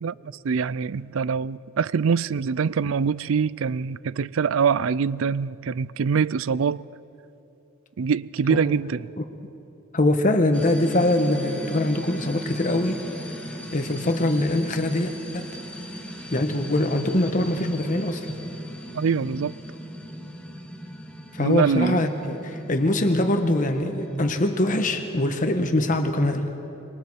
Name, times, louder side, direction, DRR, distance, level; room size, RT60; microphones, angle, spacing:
voice 1, 0.0-6.8 8.0-9.1 18.9-19.5 21.4-22.0, right 6 dB, 70° right, 0.4 m, -24 dB
voice 2, 9.9-13.0 13.7-15.5 16.3-18.3 21.3-26.5, left 1 dB, 40° left, 1.2 m, -23 dB
sound 1, 10.5-25.0, equal, 5° left, 1.7 m, -38 dB
26.5 x 23.0 x 4.7 m
head